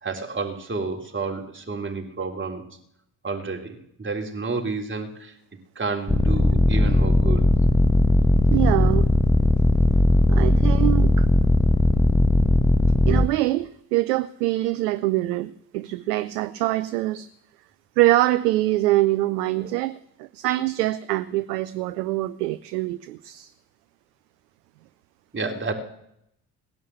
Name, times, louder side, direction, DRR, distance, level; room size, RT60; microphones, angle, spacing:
voice 1, 0.0-2.6 3.2-5.3 5.8-7.5 25.3-25.7, right 4 dB, 25° right, 3.6 m, -30 dB
sound 1, 6.1-13.3, left 1 dB, 10° left, 1.1 m, -18 dB
voice 2, 8.5-9.1 10.3-11.3 13.1-17.3 18.0-23.5, right 17 dB, 80° right, 0.6 m, -24 dB
18.5 x 11.0 x 7.1 m
hypercardioid pair, 45°, 47 cm